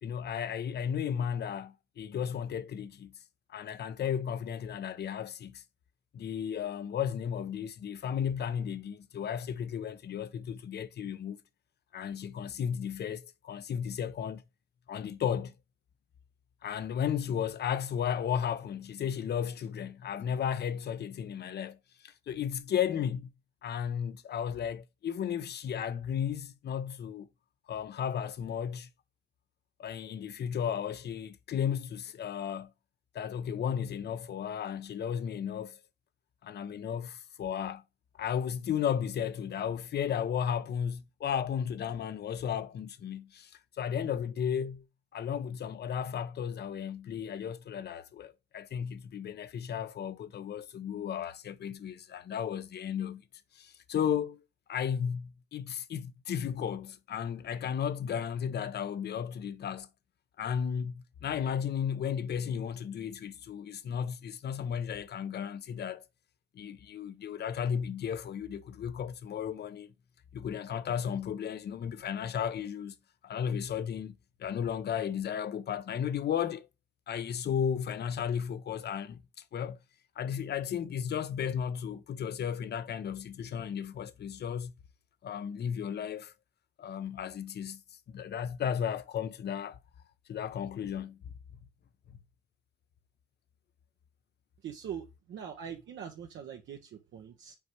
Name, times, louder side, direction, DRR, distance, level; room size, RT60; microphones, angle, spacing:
voice 1, 0.0-3.1 3.5-5.6 6.1-11.4 11.9-14.4 14.9-15.5 16.6-21.8 22.0-23.3 23.6-27.3 27.7-28.9 29.8-32.7 33.1-35.8 36.4-37.8 38.2-43.5 43.8-44.8 45.1-53.2 53.5-54.4 54.7-59.9 60.4-66.0 66.5-69.9 70.3-72.9 73.2-76.7 77.1-79.2 79.5-79.8 80.2-84.7 85.2-86.3 86.8-87.8 88.1-89.8 90.3-91.2, left 8 dB, 55° left, 0.8 m, -34 dB
voice 2, 94.6-97.5, right 8 dB, 70° right, 1.1 m, -42 dB
5.6 x 4.4 x 4.6 m
cardioid pair, 90°, 20 cm